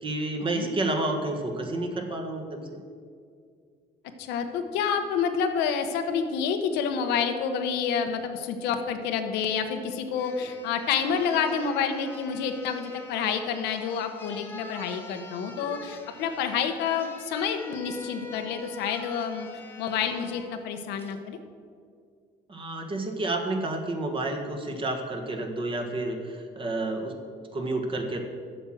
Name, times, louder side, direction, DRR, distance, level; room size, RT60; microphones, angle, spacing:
voice 1, 0.0-2.6 22.5-27.1 27.5-28.2, right 2 dB, 30° right, 4 dB, 1.4 m, -30 dB
voice 2, 4.2-19.5 19.8-21.4, left 6 dB, 90° left, 7 dB, 0.9 m, -28 dB
sound 1, 9.7-9.8 10.1-20.5 21.0-21.2, left 2 dB, 15° left, 1.1 m, -45 dB
8.0 x 6.2 x 7.7 m, 2.2 s
cardioid pair, 110°, 17 cm